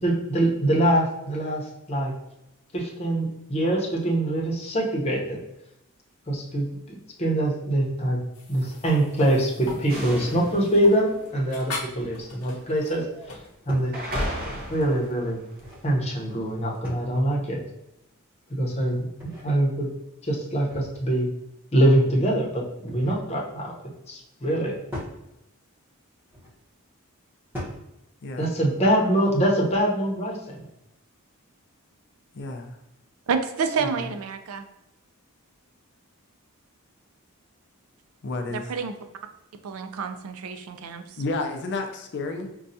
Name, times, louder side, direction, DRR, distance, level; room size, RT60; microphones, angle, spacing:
voice 1, 0.0-1.6 1.9-2.1 2.7-5.4 6.3-8.2 8.5-13.1 13.7-13.9 14.7-15.4 15.8-17.6 18.5-19.9 20.2-21.3 21.7-23.7 24.1-24.7 28.4-30.6, right 1 dB, 30° left, -2 dB, 0.8 m, -24 dB
sound 1, 8.3-15.2, left 3 dB, 80° left, 0.8 m, -41 dB
sound 2, 9.9-12.3 12.9-13.4 13.9-15.8, equal, 40° right, 0.7 m, -35 dB
sound 3, 13.2-13.3 13.7-14.0 15.3-15.9 16.8-17.3 18.9-19.5 20.7-21.2 22.6-23.3 24.9-25.2 26.3-26.6 27.5-27.9, left 1 dB, 10° right, 1.0 m, -39 dB
voice 2, 32.3-32.8 38.2-38.6 41.2-42.5, left 3 dB, 50° left, 4 dB, 0.4 m, -31 dB
voice 3, 33.3-34.6 38.5-39.0 39.6-41.0, right 5 dB, 75° right, 8 dB, 0.4 m, -29 dB
5.2 x 2.3 x 2.7 m, 0.88 s
head